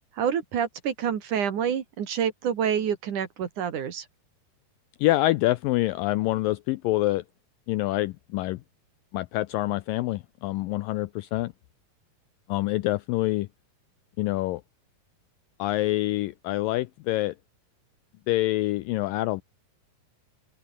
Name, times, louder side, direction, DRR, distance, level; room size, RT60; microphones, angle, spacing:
voice 1, 0.2-4.0, right 8 dB, 55° right, 3.2 m, -27 dB
voice 2, 5.0-7.2 7.7-8.6 9.1-11.5 12.5-13.5 14.2-14.6 15.6-17.3 18.3-19.4, left 18 dB, 90° left, 2.0 m, -26 dB
omnidirectional pair, 4.7 m